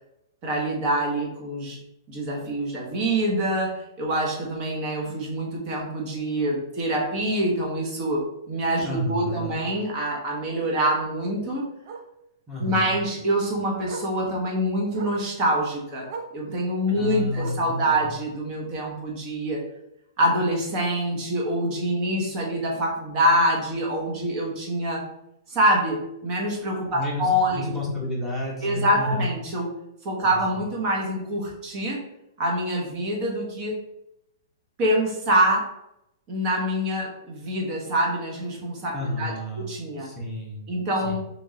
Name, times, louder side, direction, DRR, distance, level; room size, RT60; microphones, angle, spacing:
voice 1, 0.4-1.8 2.1-11.7 12.6-19.6 20.2-25.1 25.5-27.8 28.6-29.7 30.0-32.0 32.4-33.8 34.8-35.7 36.3-40.1 40.7-41.2, right 1 dB, 30° right, -1 dB, 1.0 m, -25 dB
Bark, 4.3-4.5 4.9-5.0 5.4-5.5 5.8-5.9 7.3-7.4 9.9-10.0 10.8-11.1 11.8-12.1 13.3-13.4 13.8-14.2 14.9-15.3 16.0-16.4 17.3-17.8 18.8-18.9, right 5 dB, 55° right, 0.5 m, -39 dB
voice 2, 8.8-9.6 12.5-12.9 16.9-18.0 26.9-29.3 30.2-30.4 38.9-39.7 40.0-40.6 41.1-41.2, left 1 dB, ahead, -6 dB, 1.1 m, -30 dB
3.4 x 3.0 x 2.7 m, 0.82 s
hypercardioid pair, 150°, 2 cm